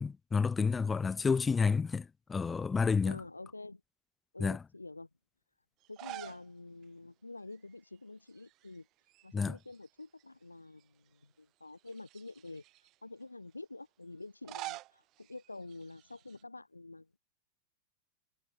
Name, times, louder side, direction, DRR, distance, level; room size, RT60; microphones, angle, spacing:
voice 1, 0.0-3.2 4.4-4.6 9.3-9.6, left 5 dB, 15° left, 1.0 m, -30 dB
voice 2, 3.0-3.8 4.3-5.1 5.9-8.9 9.2-12.6 13.0-17.2, left 2 dB, 80° left, 4.0 m, -48 dB
sound 1, 5.8-6.5 6.8-6.9 8.3-8.8 9.1-10.2 10.8-10.9 11.8-12.9 14.2-16.4, right 17 dB, 35° right, 3.5 m, -47 dB
figure-of-eight pair, 90°, 0 cm